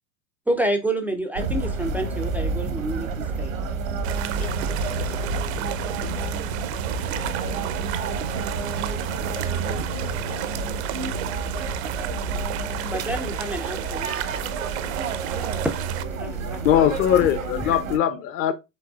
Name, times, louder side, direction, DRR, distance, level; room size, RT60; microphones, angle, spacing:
voice 1, 0.5-3.1 3.4-3.5 12.9-14.2 15.3-15.8 16.1-17.0 17.6-17.8, right 1 dB, 5° right, 0.4 m, -29 dB
sound 1, 1.4-18.0, right 4 dB, 75° right, 1.0 m, -29 dB
sound 2, 4.0-16.0, right 14 dB, 55° right, 0.6 m, -33 dB
voice 2, 4.1-7.6 9.3-10.7 12.7-12.8 18.0-18.3, left 4 dB, 75° left, 2.2 m, -46 dB
voice 3, 16.6-18.5, left 10 dB, 35° left, 0.7 m, -20 dB
5.3 x 3.7 x 2.3 m
figure-of-eight pair, 85°, 40 cm